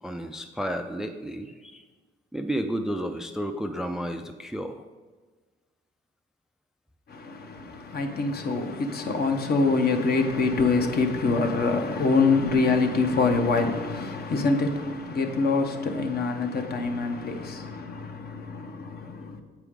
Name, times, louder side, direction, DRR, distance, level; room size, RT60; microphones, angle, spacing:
voice 1, 0.0-1.8 2.3-4.8, equal, 5° right, 0.4 m, -32 dB
voice 2, 7.1-19.4, left 3 dB, 50° left, 0.9 m, -25 dB
8.0 x 4.7 x 3.7 m
cardioid pair, 90°, 20 cm